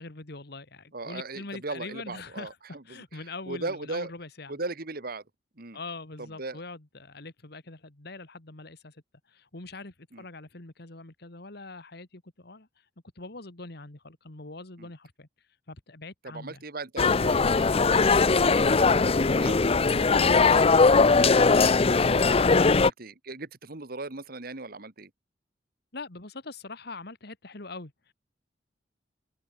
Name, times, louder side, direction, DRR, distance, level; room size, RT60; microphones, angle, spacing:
voice 1, 0.0-2.6 2.9-4.6 5.7-9.0 9.3-12.7 13.2-15.3 15.7-16.6 22.4-22.8 25.9-27.9, left 3 dB, 65° left, 2.1 m, -42 dB
voice 2, 0.9-4.1 4.5-5.2 5.6-5.8 6.2-6.6 10.1-10.2 14.8-14.9 16.2-25.1, right 3 dB, 55° right, 1.9 m, -39 dB
sound 1, 17.0-22.9, left 4 dB, 35° left, 0.6 m, -20 dB
head